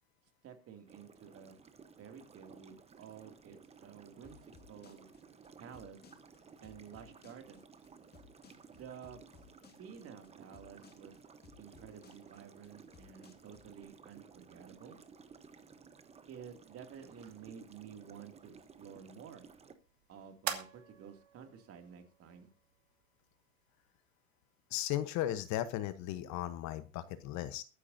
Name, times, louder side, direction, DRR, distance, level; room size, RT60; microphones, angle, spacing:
voice 1, 0.4-1.6 2.0-4.4 4.7-5.1 5.6-6.0 6.6-7.6 8.7-9.2 9.8-11.1 11.6-15.0 16.3-19.5 20.1-22.5, right 7 dB, 35° right, 6 dB, 2.7 m, -52 dB
sound 1, 0.9-19.7, right 5 dB, 15° right, 1.0 m, -57 dB
sound 2, 4.2-13.8, left 6 dB, 20° left, 2.0 m, -60 dB
sound 3, 17.0-23.9, right 11 dB, 60° right, 2.7 m, -48 dB
voice 2, 24.7-27.6, left 13 dB, 40° left, 13 dB, 1.1 m, -36 dB
22.5 x 9.8 x 2.7 m, 0.31 s
supercardioid pair, 120°, 42 cm